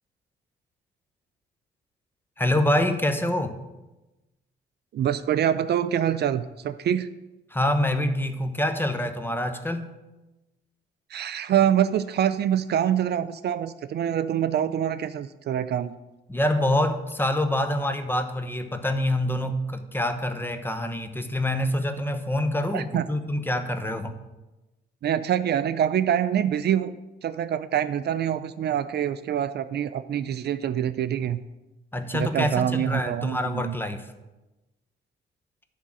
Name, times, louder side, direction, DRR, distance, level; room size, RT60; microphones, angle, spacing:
voice 1, 2.4-3.6 7.5-9.9 16.3-24.2 31.9-34.1, left 1 dB, 10° left, 8 dB, 0.9 m, -26 dB
voice 2, 4.9-7.1 11.1-15.9 22.7-23.0 25.0-27.0 27.2-31.4 32.1-33.8, right 10 dB, 55° right, 13 dB, 0.4 m, -25 dB
11.0 x 3.7 x 7.6 m, 1.0 s
cardioid pair, 90°, 20 cm